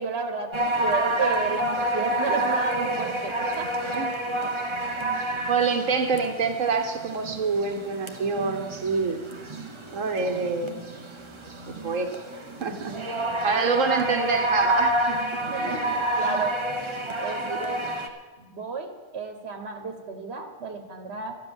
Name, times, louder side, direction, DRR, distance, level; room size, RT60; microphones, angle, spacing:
voice 1, 0.0-3.7 9.9-10.4 15.4-16.6 17.2-17.8 18.4-21.4, right 4 dB, 55° right, 5 dB, 1.6 m, -32 dB
sound 1, 0.5-18.1, right 1 dB, 25° right, 1.0 m, -29 dB
voice 2, 5.5-9.2 9.9-10.8 11.8-12.1 12.6-12.9 13.4-15.4 17.4-17.6, right 4 dB, 85° right, 4 dB, 1.5 m, -26 dB
12.5 x 10.0 x 7.1 m, 1.3 s
omnidirectional pair, 1.3 m